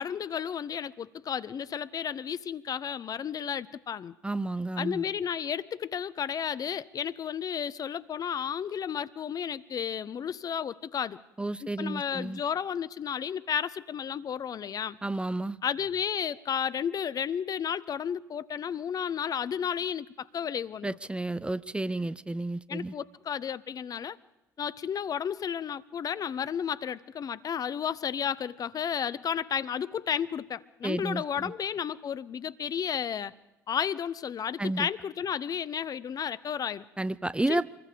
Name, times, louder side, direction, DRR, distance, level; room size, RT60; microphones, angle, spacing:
voice 1, 0.0-4.1 4.8-11.2 11.6-15.0 15.6-21.0 22.7-24.2 24.6-33.3 33.7-36.8 37.5-37.6, left 8 dB, 45° left, 17 dB, 0.7 m, -32 dB
voice 2, 4.2-5.0 11.4-12.4 15.0-15.6 20.8-22.9 30.8-31.5 34.6-34.9 37.0-37.6, right 2 dB, 10° right, 17 dB, 0.7 m, -31 dB
26.0 x 21.5 x 5.2 m, 1.0 s
figure-of-eight pair, 50°, 9 cm